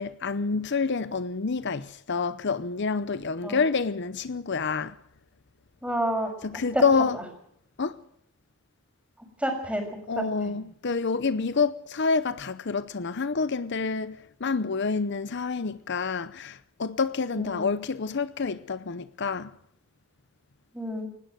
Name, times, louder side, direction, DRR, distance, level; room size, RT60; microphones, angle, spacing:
voice 1, 0.0-5.0 6.4-7.2 7.8-8.0 10.1-19.5, left 4 dB, 60° left, 0.7 m, -28 dB
voice 2, 5.8-6.3 6.7-6.8 9.4-9.8 10.1-10.6 17.4-17.7 20.7-21.1, right 1 dB, 5° right, 6.4 m, -29 dB
20.0 x 17.0 x 7.9 m
head